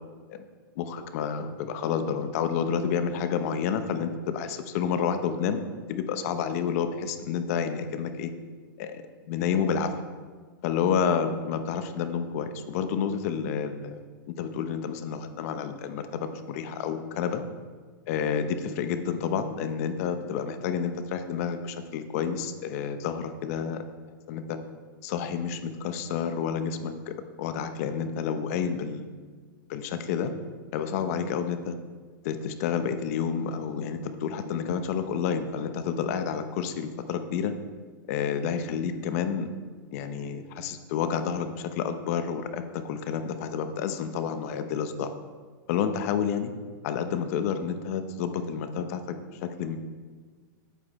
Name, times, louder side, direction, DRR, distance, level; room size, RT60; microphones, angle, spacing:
voice 1, 0.8-5.6 5.9-8.3 8.8-9.9 10.6-14.0 14.4-17.4 18.1-23.8 24.3-24.6 25.0-29.1 29.7-30.3 30.7-31.8 32.2-37.5 38.1-39.5 39.9-45.1 45.7-46.5 46.8-49.8, left 7 dB, 45° left, 8 dB, 0.9 m, -29 dB
9.5 x 8.3 x 4.3 m, 1.5 s
hypercardioid pair, 155°, 11 cm